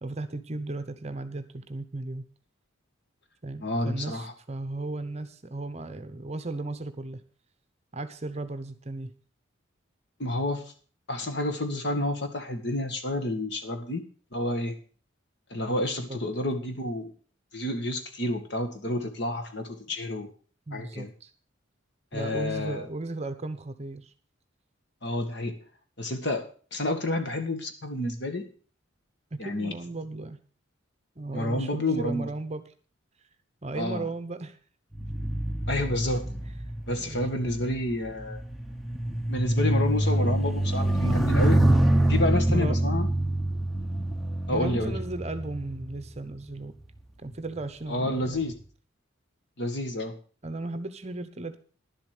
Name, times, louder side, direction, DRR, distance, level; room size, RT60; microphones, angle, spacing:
voice 1, 0.0-2.2 3.4-7.2 7.9-9.1 16.1-16.2 20.7-21.3 22.1-24.1 29.3-30.4 31.2-32.6 33.6-34.6 37.0-37.2 40.0-40.4 41.0-41.2 42.5-42.8 44.5-46.7 47.2-48.4 50.4-51.6, right 2 dB, 30° right, 11 dB, 0.9 m, -35 dB
voice 2, 3.6-4.3 10.2-10.7 11.1-14.0 14.3-14.8 15.5-17.1 17.5-20.3 20.7-21.1 22.1-22.9 25.0-25.6 26.0-26.5 26.7-28.5 29.4-29.7 31.3-32.3 33.7-34.1 35.7-36.3 36.9-38.4 39.3-41.6 42.1-43.1 44.5-45.0 47.9-48.5 49.6-50.1, left 1 dB, 55° left, 7 dB, 1.8 m, -29 dB
sound 1, 34.9-46.6 47.3-47.6, right 1 dB, ahead, 0.9 m, -26 dB
11.0 x 7.7 x 6.6 m, 0.41 s
head